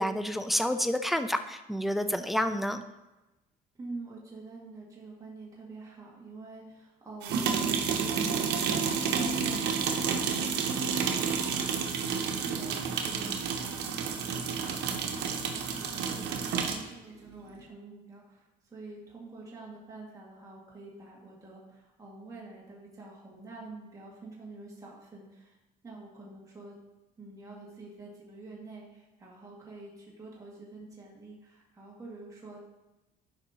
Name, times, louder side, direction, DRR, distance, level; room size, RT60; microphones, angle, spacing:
voice 1, 0.0-2.8, equal, ahead, 9 dB, 0.4 m, -29 dB
voice 2, 3.8-25.6 25.8-26.8 27.2-32.6, right 3 dB, 20° right, -5 dB, 2.1 m, -47 dB
sound 1, 7.2-16.9, right 6 dB, 85° right, 0.9 m, -30 dB
11.5 x 5.2 x 2.9 m, 1.0 s
cardioid pair, 110°, 17 cm